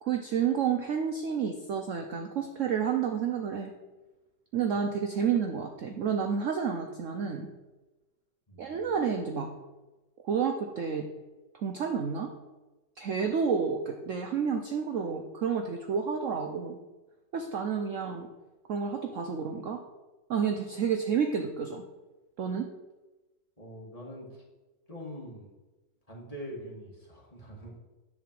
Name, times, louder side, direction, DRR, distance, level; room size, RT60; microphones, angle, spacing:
voice 1, 0.0-3.7 4.5-7.5 8.6-9.5 10.2-11.1 11.5-12.3 13.0-16.8 17.3-18.3 18.7-19.8 20.3-21.8 22.4-22.7, right 6 dB, 60° right, 4 dB, 0.9 m, -30 dB
voice 2, 23.6-24.4 24.9-25.5 26.1-27.8, equal, 20° left, -3 dB, 2.0 m, -43 dB
10.5 x 3.9 x 7.6 m, 1.1 s
omnidirectional pair, 1.9 m